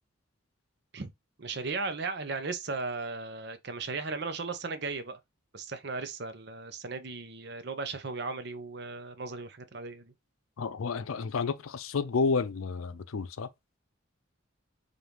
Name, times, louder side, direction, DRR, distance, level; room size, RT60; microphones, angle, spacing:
voice 1, 1.4-5.2 5.5-10.1, right 4 dB, 55° right, 0.7 m, -36 dB
voice 2, 10.6-13.5, left 4 dB, 85° left, 0.5 m, -30 dB
5.2 x 2.5 x 2.9 m
head